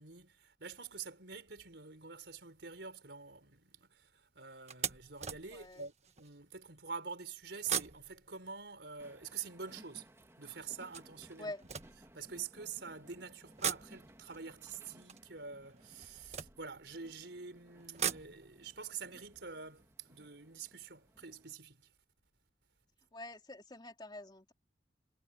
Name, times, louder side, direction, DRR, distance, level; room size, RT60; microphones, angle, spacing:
voice 1, 0.0-10.1 10.4-11.5 12.1-21.9, right 5 dB, 75° right, 4.1 m, -46 dB
sound 1, 2.3-2.6 3.2-3.4 3.8-3.9 4.7-6.4 7.5-9.8 10.7-12.7 13.4-17.2 17.7-20.7 21.0-21.1 21.4-21.5, right 8 dB, 40° right, 1.5 m, -43 dB
voice 2, 5.5-5.9 11.4-11.6 23.1-24.5, left 2 dB, 25° left, 2.8 m, -46 dB
Train, 9.0-21.5, right 1 dB, 15° right, 2.4 m, -61 dB
head